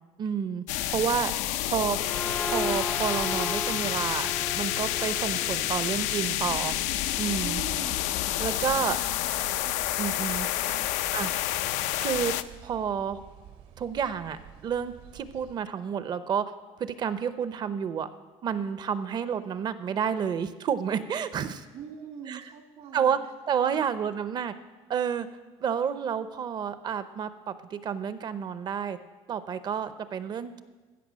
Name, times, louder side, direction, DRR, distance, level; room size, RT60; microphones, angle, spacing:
voice 1, 0.2-1.3 1.7-2.0 2.4-6.8 7.2-7.6 8.4-9.0 10.0-10.5 11.1-11.3 12.0-13.2 13.8-16.4 16.8-18.1 18.4-21.6 22.3-22.4 22.9-23.2 23.5-24.5 24.9-25.3 25.6-29.0 29.3-30.6, right 7 dB, 35° right, 13 dB, 0.6 m, -30 dB
sound 1, 0.7-12.4, left 14 dB, 85° left, 0.5 m, -29 dB
voice 2, 1.2-1.6 7.4-8.0 8.8-9.0 9.5-9.9 10.6-11.4 21.7-23.3 23.7-24.1, right 7 dB, 65° right, 5 dB, 1.6 m, -44 dB
sound 2, 1.9-7.1, left 2 dB, 5° left, 0.3 m, -37 dB
sound 3, 2.3-15.6, right 10 dB, 85° right, 2.3 m, -50 dB
15.5 x 5.4 x 7.4 m, 1.3 s
cardioid pair, 145°, 12 cm